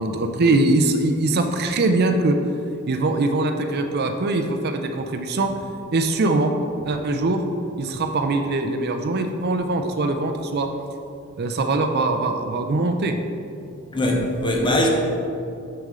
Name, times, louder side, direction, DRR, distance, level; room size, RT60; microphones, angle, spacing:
voice 1, 0.0-2.4 2.9-5.5 5.9-6.5 6.8-7.4 7.8-10.7 11.4-13.2, right 2 dB, 50° right, 5 dB, 0.5 m, -22 dB
voice 2, 13.9-14.9, left 1 dB, 25° left, 1 dB, 0.8 m, -21 dB
6.9 x 6.2 x 3.7 m, 2.5 s
head